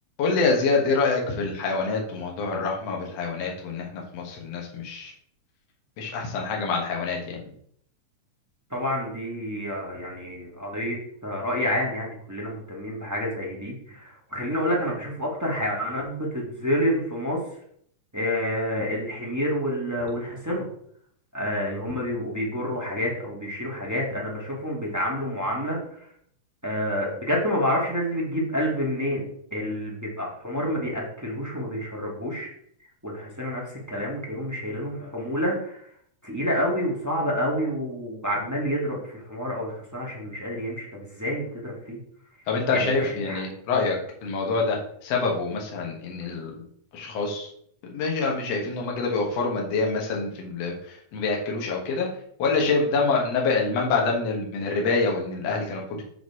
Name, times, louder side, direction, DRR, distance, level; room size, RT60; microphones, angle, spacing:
voice 1, 0.2-5.1 6.0-7.4 42.5-44.0 44.2-46.5 46.9-47.5 47.9-52.1 52.4-56.0, left 4 dB, 65° left, 0 dB, 2.3 m, -26 dB
voice 2, 8.7-17.4 18.1-20.6 21.3-26.1 26.6-29.2 29.5-32.5 33.0-35.8 36.2-42.0 42.7-43.4, equal, 10° right, -3 dB, 0.7 m, -28 dB
6.4 x 5.0 x 4.7 m, 0.65 s
omnidirectional pair, 3.4 m